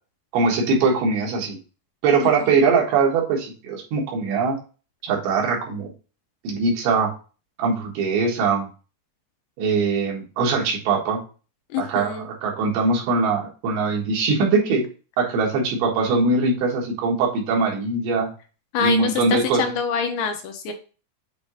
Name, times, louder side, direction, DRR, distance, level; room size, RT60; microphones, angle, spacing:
voice 1, 0.3-1.6 2.0-4.6 5.0-5.9 6.4-7.1 7.6-8.7 9.6-11.2 11.8-14.9 15.2-18.3 18.8-19.6, right 4 dB, 90° right, -1 dB, 4.0 m, -21 dB
voice 2, 11.7-12.3 18.7-20.7, left 6 dB, 75° left, 5 dB, 2.6 m, -26 dB
8.2 x 2.8 x 4.9 m, 0.35 s
omnidirectional pair, 4.9 m